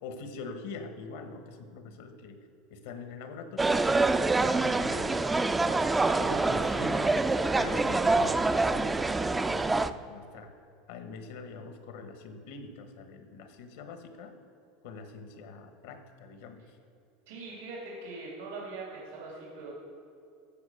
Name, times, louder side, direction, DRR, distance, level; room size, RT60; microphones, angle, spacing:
voice 1, 0.0-2.4 2.7-4.2 4.6-7.1 7.5-10.5 10.9-14.4 14.8-16.8, left 4 dB, 75° left, 7 dB, 1.2 m, -44 dB
sound 1, 3.6-9.9, right 3 dB, 15° right, 0.4 m, -26 dB
voice 2, 17.3-19.7, right 3 dB, 85° right, -4 dB, 2.7 m, -41 dB
14.5 x 4.8 x 6.4 m, 2.5 s
supercardioid pair, 110°, 0 cm